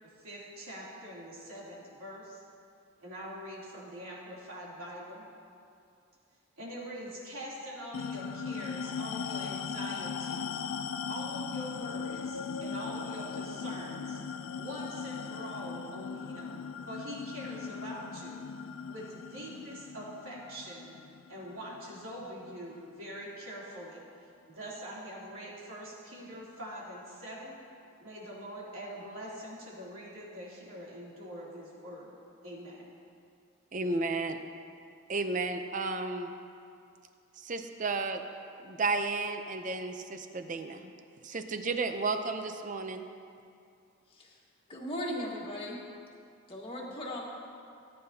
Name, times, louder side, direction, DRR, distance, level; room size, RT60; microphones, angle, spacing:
voice 1, 0.0-2.4 3.0-5.2 6.6-10.6 11.1-14.2 14.6-18.4 18.9-20.9 21.3-24.0 24.5-27.6 28.0-32.1 32.4-32.9, equal, 75° right, -6 dB, 3.0 m, -44 dB
sound 1, 7.9-22.8, left 6 dB, 70° left, 0.4 m, -39 dB
voice 2, 33.7-34.4 35.1-36.3 37.4-38.2 38.6-40.9 41.2-43.0, right 3 dB, 35° right, 7 dB, 0.6 m, -33 dB
voice 3, 44.7-45.8 46.5-47.2, left 1 dB, 25° left, -4 dB, 1.6 m, -37 dB
18.0 x 9.7 x 2.8 m, 2.5 s
head